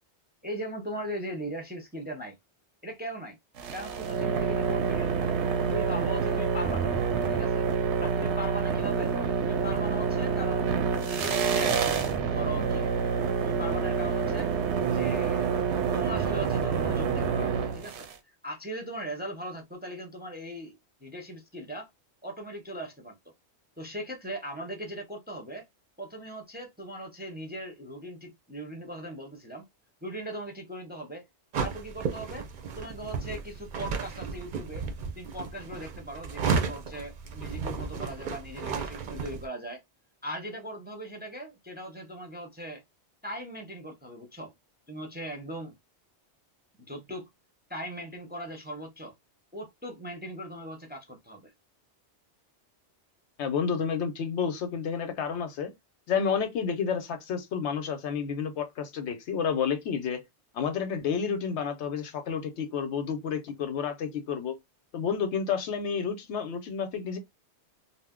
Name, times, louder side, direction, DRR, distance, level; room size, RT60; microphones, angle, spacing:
voice 1, 0.4-2.3 2.8-3.4 3.7-5.3 5.7-6.9 7.3-7.7 8.0-9.1 9.5-11.9 12.3-12.9 13.4-14.5 14.9-15.5 15.9-18.1 18.4-21.9 22.2-23.1 23.8-25.6 26.0-29.7 30.0-31.2 31.6-32.5 32.7-34.8 35.2-39.8 40.2-42.8 43.2-44.5 44.9-45.7 46.9-47.3 47.7-49.1 49.5-51.5, right 1 dB, 10° right, 0.5 m, -39 dB
sound 1, 3.6-18.1, right 6 dB, 85° right, 0.9 m, -27 dB
sound 2, 31.5-39.5, right 5 dB, 55° right, 0.6 m, -33 dB
voice 2, 53.4-55.7 56.1-60.2 60.5-64.5 64.9-67.2, left 6 dB, 80° left, 0.9 m, -30 dB
2.6 x 2.0 x 3.5 m
omnidirectional pair, 1.2 m